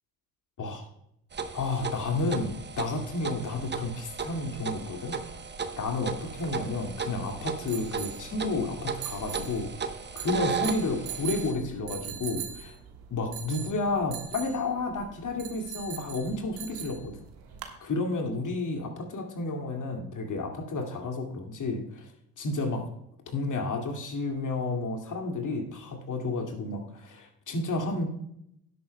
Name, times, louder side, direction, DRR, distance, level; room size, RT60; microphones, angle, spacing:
sound 1, 1.3-11.5, right 5 dB, 25° right, 1.0 m, -36 dB
voice 1, 1.5-5.2 5.8-9.7 10.2-12.7 13.1-17.2 17.8-22.1 22.4-22.8 23.3-28.1, left 3 dB, 45° left, 4 dB, 2.3 m, -31 dB
sound 2, 6.2-17.8, right 10 dB, 60° right, 1.5 m, -42 dB
16.5 x 8.3 x 2.2 m, 0.78 s
figure-of-eight pair, 45°, 44 cm